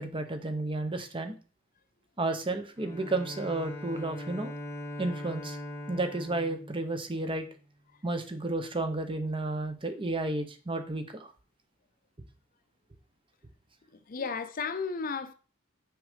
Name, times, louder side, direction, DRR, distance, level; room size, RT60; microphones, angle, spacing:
voice 1, 0.0-1.3 2.2-4.5 5.0-5.6 5.9-7.5 8.0-11.3, right 2 dB, 25° right, 0.9 m, -32 dB
Bowed string instrument, 2.8-7.6, left 1 dB, 15° left, 1.2 m, -41 dB
voice 2, 13.9-15.3, left 5 dB, 45° left, 0.5 m, -34 dB
6.3 x 4.8 x 5.1 m
head